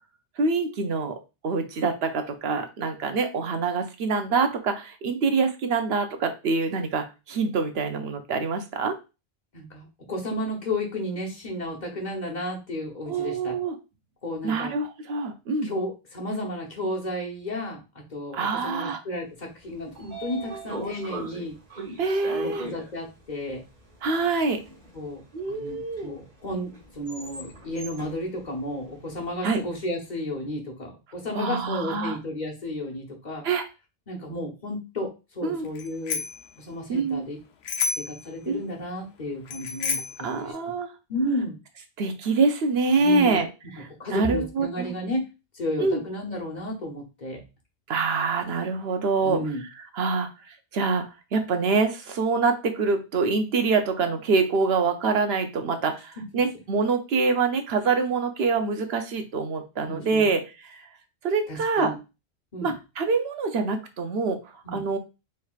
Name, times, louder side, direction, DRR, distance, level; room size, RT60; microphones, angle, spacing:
voice 1, 0.4-1.2 1.4-8.9 13.1-13.7 14.4-15.7 18.3-19.0 22.0-22.7 24.0-24.6 25.3-26.1 29.4-29.6 31.3-32.2 33.4-33.6 35.4-35.7 36.9-37.2 38.5-38.6 40.2-40.9 42.0-43.5 43.8-44.9 45.8-46.0 47.9-49.4 49.9-51.0 51.3-60.8 61.2-61.9 62.6-64.4 64.7-65.0, right 4 dB, 75° right, 6 dB, 0.9 m, -25 dB
voice 2, 9.5-13.6 14.2-14.7 15.6-17.8 18.1-21.5 22.4-23.6 24.9-25.2 25.5-33.4 34.1-36.2 36.6-37.4 38.0-40.5 41.1-41.6 43.0-43.4 44.0-45.2 45.5-47.4 49.2-49.6 56.2-56.3 59.8-60.3 61.5-62.0 62.5-62.7 64.6-64.8, left 1 dB, 45° left, 0 dB, 1.1 m, -32 dB
Train / Sliding door, 19.5-29.7, right 2 dB, 45° right, 1.5 m, -41 dB
Bicycle bell, 35.7-36.5 37.6-38.2 39.5-40.2, left 5 dB, 85° left, 0.9 m, -29 dB
4.6 x 3.3 x 2.4 m, 0.28 s
omnidirectional pair, 1.1 m